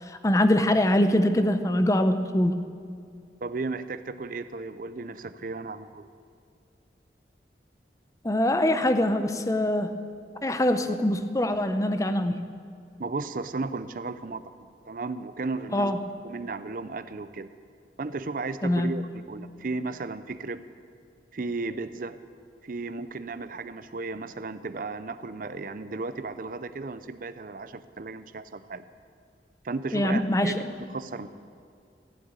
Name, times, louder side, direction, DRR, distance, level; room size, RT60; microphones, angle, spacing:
voice 1, 0.1-2.6 8.2-9.9 10.4-12.4 15.7-16.0 18.6-18.9 29.9-30.6, left 1 dB, 20° left, 9 dB, 0.6 m, -23 dB
voice 2, 3.4-6.1 13.0-14.5 14.8-16.0 16.2-17.5 18.0-20.6 21.3-22.2 22.6-28.8 29.6-31.3, right 3 dB, 50° right, 12 dB, 0.5 m, -34 dB
14.5 x 7.6 x 8.9 m, 2.3 s
head